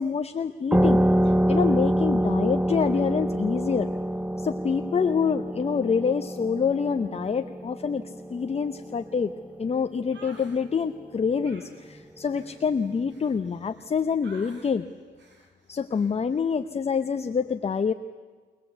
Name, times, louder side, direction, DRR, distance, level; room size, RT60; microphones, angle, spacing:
voice 1, 0.0-3.9 4.4-9.3 9.6-14.9 15.7-17.9, left 6 dB, 30° left, 9 dB, 0.8 m, -26 dB
sound 1, 0.7-9.9, right 1 dB, 5° right, 0.7 m, -26 dB
sound 2, 10.1-10.6 11.4-13.9 14.2-14.8 15.2-15.5 15.9-16.2, right 3 dB, 65° right, 4.0 m, -51 dB
24.0 x 19.5 x 8.0 m, 1.4 s
cardioid pair, 90°, 20 cm